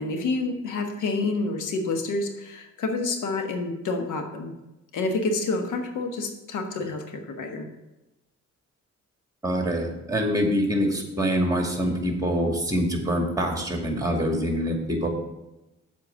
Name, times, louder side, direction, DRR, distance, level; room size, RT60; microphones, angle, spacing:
voice 1, 0.0-4.6 4.9-7.7, left 3 dB, 85° left, 5 dB, 1.4 m, -28 dB
voice 2, 9.4-15.1, equal, 10° right, 2 dB, 2.3 m, -25 dB
7.5 x 4.5 x 7.0 m, 0.99 s
cardioid pair, 75°, 30 cm